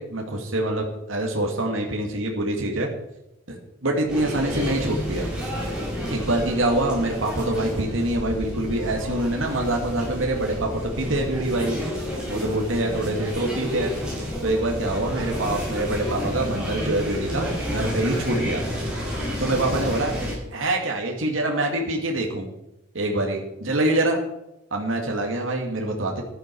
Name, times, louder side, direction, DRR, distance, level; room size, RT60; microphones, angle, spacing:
voice 1, 0.0-2.9 3.5-5.3 6.1-11.8 12.3-13.9 14.4-18.6 19.4-20.1 20.5-22.5 22.9-24.2 24.7-26.2, right 1 dB, 75° right, 1 dB, 2.2 m, -25 dB
sound 1, 4.1-20.3, equal, 5° right, 6.1 m, -30 dB
13.5 x 11.5 x 4.7 m, 0.90 s
head